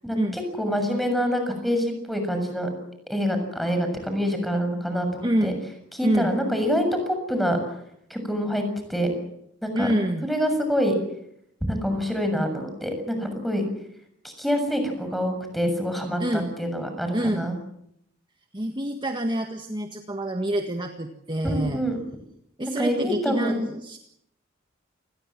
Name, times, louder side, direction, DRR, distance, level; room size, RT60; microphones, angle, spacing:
voice 1, 0.0-2.7 3.1-5.5 5.9-7.6 8.1-8.6 8.9-9.1 9.6-9.9 10.2-11.0 11.6-13.6 14.2-17.5 21.4-22.0 22.8-23.6, equal, ahead, 6 dB, 7.0 m, -26 dB
voice 2, 5.2-5.6 6.0-6.3 9.7-10.3 16.2-16.5 17.1-17.5 18.5-21.8 22.6-24.0, right 1 dB, 25° right, 5 dB, 1.7 m, -27 dB
28.5 x 21.0 x 7.5 m, 0.74 s
head